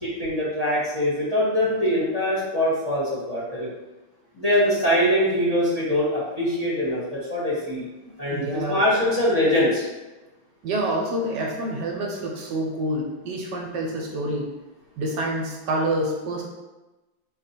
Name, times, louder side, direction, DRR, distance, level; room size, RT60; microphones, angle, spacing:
voice 1, 0.0-3.7 4.3-7.0 7.3-7.8 8.2-9.8, left 1 dB, 25° left, -9 dB, 0.9 m, -23 dB
voice 2, 8.3-8.8 10.6-14.5 15.0-16.4, right 1 dB, 75° right, 0 dB, 1.2 m, -27 dB
4.6 x 2.3 x 4.1 m, 1.1 s
omnidirectional pair, 2.0 m